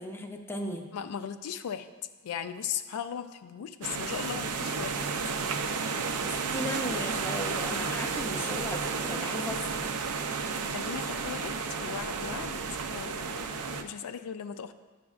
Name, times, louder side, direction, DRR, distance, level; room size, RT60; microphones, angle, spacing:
voice 1, 0.0-0.9 6.2-9.9, left 1 dB, 10° left, 3 dB, 0.5 m, -36 dB
voice 2, 0.9-1.9 2.2-5.1 10.7-12.6 12.9-14.7, left 8 dB, 85° left, 10 dB, 0.4 m, -37 dB
sound 1, 3.8-13.8, right 5 dB, 80° right, 0.5 m, -32 dB
10.5 x 6.1 x 2.4 m, 1.3 s
head